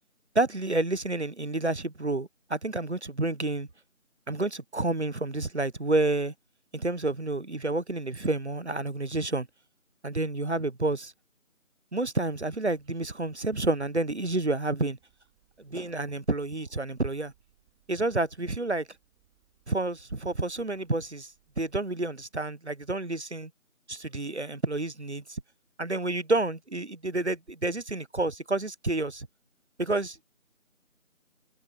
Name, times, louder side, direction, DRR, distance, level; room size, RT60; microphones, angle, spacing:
voice 1, 0.3-3.7 4.3-6.3 6.7-9.5 10.0-11.1 11.9-15.0 15.6-17.3 17.9-18.9 19.7-23.5 23.9-25.4 25.8-29.3 29.8-30.2, right 2 dB, 55° right, 0.9 m, -29 dB
sound 1, 12.6-21.7, right 18 dB, 5° right, 7.3 m, -69 dB
figure-of-eight pair, 170°, 41 cm